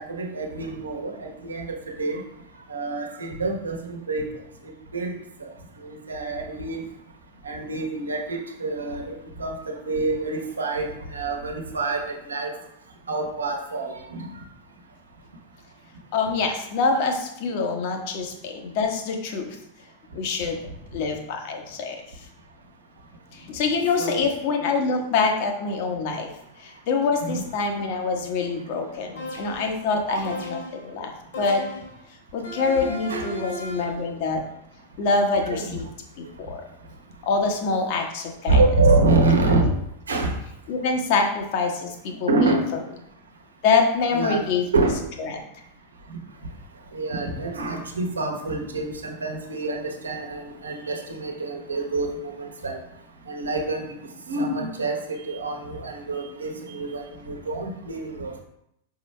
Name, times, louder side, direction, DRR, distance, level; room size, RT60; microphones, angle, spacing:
voice 1, 0.0-2.2 2.7-4.3 4.9-5.1 5.4-5.5 5.8-6.9 7.4-12.5 13.1-14.3 24.0-24.3 27.2-27.4 30.1-30.2 33.1-33.3 35.4-35.7 38.5-39.7 40.1-40.3 42.1-42.7 44.1-44.5 44.7-45.0 46.9-52.8 53.3-53.9 54.3-58.3, right 3 dB, 75° right, 2 dB, 1.2 m, -26 dB
voice 2, 16.1-19.6 20.1-20.6 20.9-22.0 23.3-26.3 26.6-31.1 31.4-31.6 32.3-34.4 35.0-35.9 36.4-36.6 37.2-38.6 40.7-42.5 43.6-44.7 45.2-45.3, left 4 dB, 50° left, 3 dB, 1.2 m, -25 dB
sound 1, 29.2-29.8 30.2-30.9 31.3-32.0 32.4-34.0, equal, 65° left, 2.3 m, -35 dB
6.2 x 5.2 x 3.3 m, 0.77 s
figure-of-eight pair, 90°, 0 cm